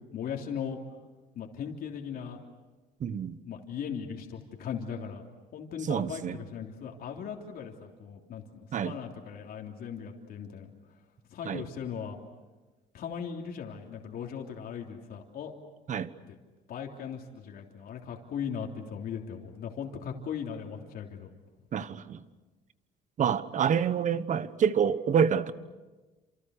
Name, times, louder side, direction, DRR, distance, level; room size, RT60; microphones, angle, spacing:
voice 1, 0.1-0.8 1.4-2.4 3.4-5.3 5.5-10.7 11.3-12.2 12.9-15.5 16.3-16.4 16.7-21.3, left 7 dB, 60° left, 3.3 m, -38 dB
voice 2, 3.0-3.4 5.8-6.4 8.7-9.0 11.4-11.6 15.9-16.1 21.7-22.2 23.2-25.5, right 7 dB, 45° right, 1.3 m, -27 dB
30.0 x 28.0 x 6.6 m
cardioid pair, 110°, 17 cm